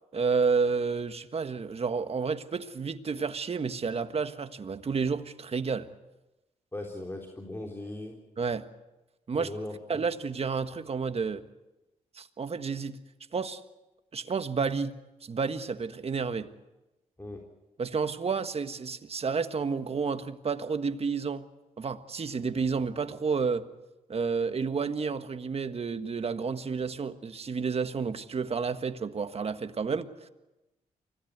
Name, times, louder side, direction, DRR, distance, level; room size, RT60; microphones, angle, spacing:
voice 1, 0.1-5.9 8.4-8.6 9.3-9.5 9.9-11.4 12.1-13.0 13.3-13.6 14.1-14.9 15.2-16.5 17.8-21.4 21.8-23.6 24.1-30.1, right 5 dB, 45° right, 10 dB, 1.5 m, -30 dB
voice 2, 6.7-8.2 9.3-10.0 17.2-17.4, left 2 dB, 15° left, 1 dB, 3.7 m, -39 dB
25.0 x 17.0 x 8.2 m, 1.0 s
cardioid pair, 60°, 14 cm